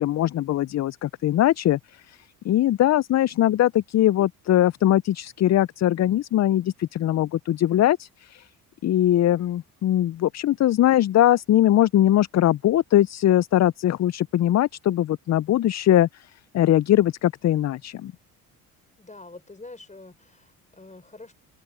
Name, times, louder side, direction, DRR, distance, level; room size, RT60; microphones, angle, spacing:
voice 1, 0.0-1.8 2.1-2.2 2.4-8.5 8.8-16.1 16.5-18.1, left 12 dB, 40° left, 0.5 m, -21 dB
voice 2, 19.0-21.3, left 2 dB, 15° left, 4.6 m, -45 dB
hypercardioid pair, 60°, 44 cm